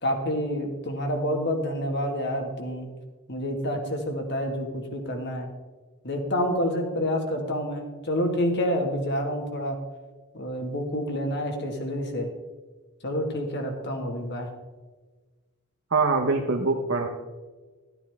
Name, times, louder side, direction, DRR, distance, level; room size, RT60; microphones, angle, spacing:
voice 1, 0.0-2.9 3.3-5.5 6.0-9.8 10.3-12.3 13.0-14.5, equal, 50° left, 3 dB, 1.8 m, -28 dB
voice 2, 15.9-17.1, right 4 dB, 60° right, 3 dB, 1.0 m, -23 dB
13.5 x 9.8 x 3.5 m, 1.3 s
head